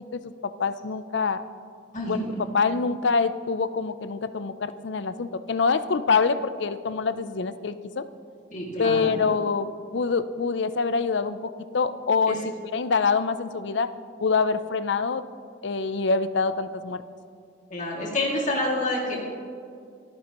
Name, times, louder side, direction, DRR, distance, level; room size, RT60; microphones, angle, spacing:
voice 1, 0.6-1.4 2.1-2.2 2.5-8.1 8.8-12.4 12.7-13.9 14.2-15.2 15.6-17.0, left 4 dB, 60° left, 13 dB, 0.5 m, -25 dB
voice 2, 1.9-2.3 8.5-9.2 12.3-12.4 17.7-19.2, left 1 dB, 40° left, -2 dB, 2.4 m, -28 dB
26.5 x 9.7 x 3.0 m, 2.3 s
head